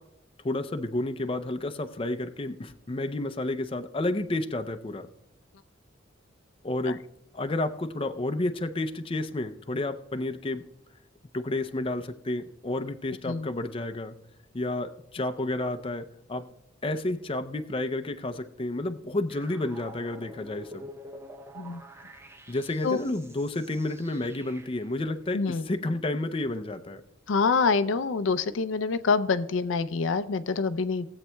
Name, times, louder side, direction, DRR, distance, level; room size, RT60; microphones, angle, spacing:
voice 1, 0.4-5.1 6.6-7.0 7.3-10.6 11.3-14.1 14.5-16.5 16.8-20.9 22.5-27.0, left 2 dB, 30° left, 8 dB, 0.5 m, -31 dB
sound 1, 19.3-25.0, equal, 15° right, 0.6 m, -47 dB
voice 2, 27.3-31.1, left 4 dB, 75° left, 12 dB, 0.5 m, -26 dB
18.5 x 8.1 x 2.2 m, 0.89 s
head